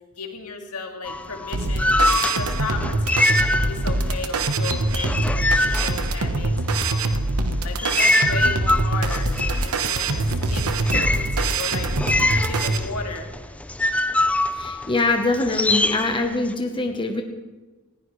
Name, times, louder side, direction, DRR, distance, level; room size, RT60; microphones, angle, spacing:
voice 1, 0.2-1.9 2.3-7.2 7.6-13.3, left 4 dB, 85° left, 3 dB, 2.0 m, -34 dB
sound 1, 1.1-4.2 4.4-6.7 7.3-16.5, left 2 dB, 5° left, 0.4 m, -24 dB
sound 2, 1.5-12.8, right 2 dB, 75° right, 1.1 m, -24 dB
voice 2, 14.5-17.2, left 2 dB, 20° left, 4 dB, 1.0 m, -23 dB
19.5 x 15.5 x 3.2 m, 1.3 s
head